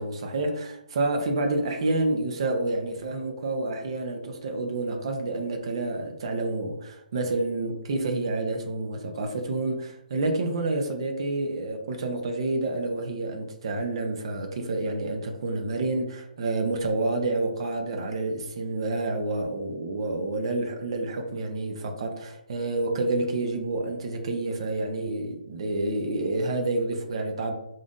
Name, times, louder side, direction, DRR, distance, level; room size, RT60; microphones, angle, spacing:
voice 1, 0.0-27.5, right 2 dB, 35° right, 0.6 m, -29 dB
5.3 x 2.5 x 2.5 m
hypercardioid pair, 175°, 5 cm